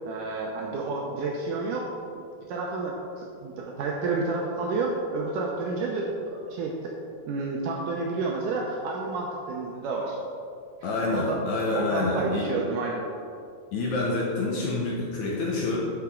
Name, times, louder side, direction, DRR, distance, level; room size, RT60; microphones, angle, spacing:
voice 1, 0.0-1.9 2.5-6.9 7.3-10.2 11.1-11.4 11.7-13.0, right 3 dB, 80° right, -1 dB, 1.8 m, -30 dB
voice 2, 10.8-12.5 13.7-15.8, left 2 dB, 70° left, -4 dB, 1.9 m, -27 dB
11.5 x 5.9 x 3.7 m, 2.5 s
omnidirectional pair, 4.6 m